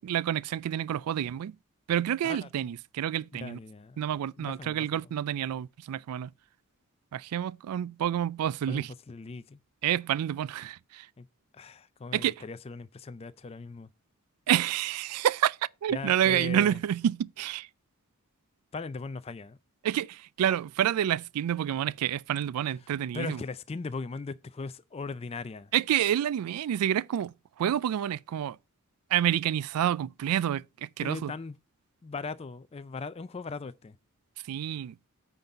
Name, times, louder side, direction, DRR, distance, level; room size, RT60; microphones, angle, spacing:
voice 1, 0.0-1.5 1.9-3.6 4.0-6.3 7.1-8.9 9.8-11.1 12.1-12.4 14.5-17.7 19.8-23.4 25.7-28.6 29.1-31.3 34.5-35.0, right 10 dB, 85° right, 0.3 m, -28 dB
voice 2, 3.4-4.0 4.4-5.0 8.7-9.6 11.2-11.3 11.5-13.9 15.9-16.8 18.7-19.6 23.1-25.7 31.0-31.6 32.0-34.0, left 4 dB, 25° left, 0.3 m, -39 dB
9.0 x 4.0 x 5.6 m
head